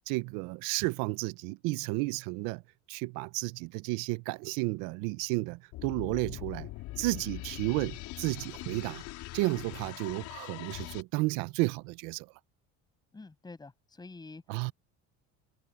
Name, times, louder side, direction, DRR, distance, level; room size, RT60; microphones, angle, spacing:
voice 1, 0.1-2.6 2.9-6.7 7.0-9.0 9.3-12.3 14.5-14.7, right 23 dB, 85° right, 0.8 m, -32 dB
sound 1, 5.7-11.0, left 18 dB, 70° left, 4.4 m, -42 dB
voice 2, 13.1-14.4, left 3 dB, 15° left, 7.0 m, -47 dB
cardioid pair, 140°, 31 cm